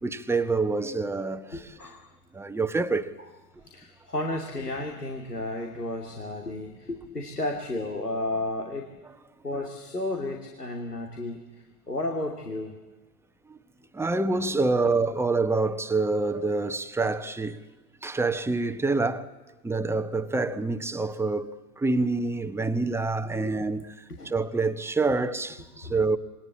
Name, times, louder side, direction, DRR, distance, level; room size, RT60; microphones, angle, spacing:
voice 1, 0.0-1.7 2.3-3.1 13.5-13.6 13.9-17.6 18.0-19.3 19.6-21.5 21.8-23.8 24.2-26.2, right 3 dB, 5° right, 1.1 m, -26 dB
voice 2, 1.5-2.0 3.6-8.9 9.4-11.5 11.9-12.8 23.3-23.6 24.1-24.3 25.8-26.0, left 2 dB, 90° left, 2.9 m, -33 dB
27.0 x 22.0 x 8.6 m
figure-of-eight pair, 90°, 45 cm